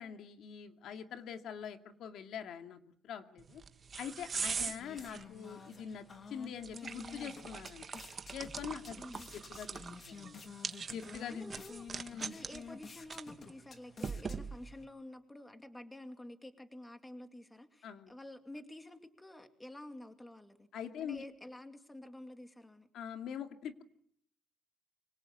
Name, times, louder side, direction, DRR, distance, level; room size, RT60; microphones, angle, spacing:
voice 1, 0.0-3.6 4.0-7.8 8.3-9.0 9.3-9.8 10.1-10.4 10.9-11.4 12.1-12.3 17.8-18.1 20.7-21.2 22.9-23.8, left 8 dB, 70° left, 7 dB, 2.4 m, -44 dB
sound 1, 3.4-14.8, right 5 dB, 30° right, 1.4 m, -43 dB
sound 2, 4.3-14.8, left 5 dB, 35° left, 2.8 m, -51 dB
voice 2, 8.9-9.3 11.3-11.9 12.2-20.7 21.0-22.9, left 1 dB, 10° left, 7 dB, 2.5 m, -50 dB
26.5 x 25.5 x 8.5 m, 0.68 s
cardioid pair, 170°, 0 cm